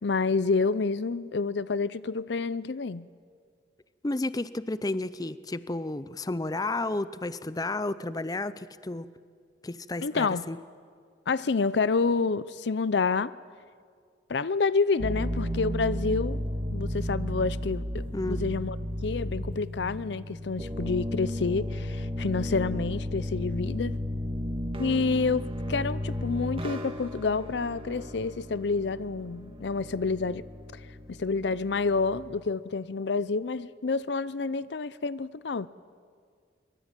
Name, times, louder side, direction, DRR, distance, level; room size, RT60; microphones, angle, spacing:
voice 1, 0.0-3.1 10.0-10.5 11.3-13.3 14.3-16.4 16.7-18.8 19.0-24.0 24.8-30.5 30.7-30.8 31.1-35.7, left 4 dB, 70° left, 0.6 m, -28 dB
voice 2, 4.0-9.1 9.6-10.6 18.1-18.4, left 2 dB, 20° left, 0.6 m, -32 dB
sound 1, 15.0-32.4, left 1 dB, 30° right, 1.9 m, -34 dB
23.5 x 21.5 x 9.0 m
head